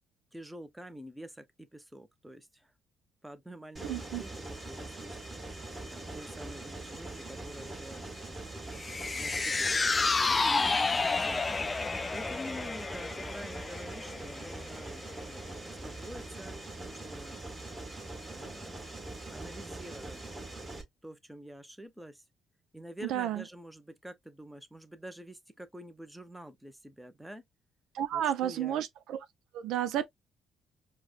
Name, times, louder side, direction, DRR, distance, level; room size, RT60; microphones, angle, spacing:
voice 1, 0.3-2.7 3.2-5.2 5.9-8.0 9.1-9.7 10.0-17.4 18.3-18.8 19.3-20.2 21.0-22.2 22.7-27.4 28.1-28.8, equal, 5° right, 0.8 m, -47 dB
Mechanisms, 3.8-20.8, right 2 dB, 25° right, 1.6 m, -43 dB
voice 2, 3.8-4.2 23.1-23.4 27.9-29.2 29.5-30.1, right 11 dB, 80° right, 0.4 m, -31 dB
sound 1, 8.8-15.2 15.6-15.7, left 4 dB, 30° left, 0.4 m, -31 dB
4.7 x 2.2 x 2.4 m
cardioid pair, 80°, 0 cm